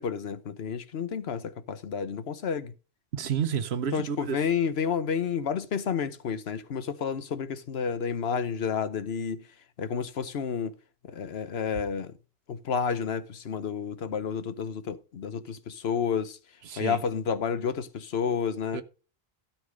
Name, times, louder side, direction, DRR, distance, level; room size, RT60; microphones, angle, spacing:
voice 1, 0.0-2.7 3.9-9.4 9.8-10.7 11.1-12.1 12.5-16.4 16.8-18.8, left 6 dB, 80° left, 1.2 m, -30 dB
voice 2, 3.1-4.4 16.7-17.0 18.7-18.8, right 8 dB, 85° right, 1.1 m, -30 dB
13.0 x 6.0 x 5.0 m
omnidirectional pair, 1.0 m